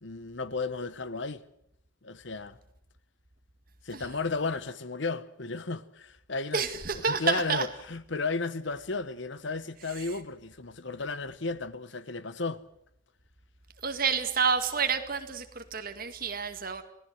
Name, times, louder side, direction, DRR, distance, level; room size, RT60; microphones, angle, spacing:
voice 1, 0.0-1.4 2.0-2.6 3.8-6.6 7.1-12.6, left 3 dB, 60° left, 1.0 m, -34 dB
voice 2, 6.5-7.7 9.9-10.2 13.8-16.8, right 5 dB, 45° right, 2.0 m, -29 dB
26.5 x 18.0 x 7.9 m
head